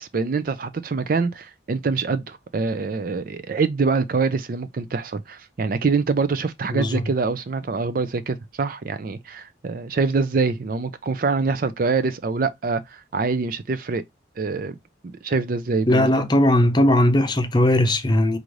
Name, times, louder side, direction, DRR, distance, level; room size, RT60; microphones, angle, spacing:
voice 1, 0.0-14.0 14.4-14.7 15.0-16.1, right 4 dB, 50° right, 0.4 m, -25 dB
voice 2, 15.9-18.4, left 1 dB, 25° left, 0.6 m, -18 dB
4.9 x 2.6 x 3.1 m
head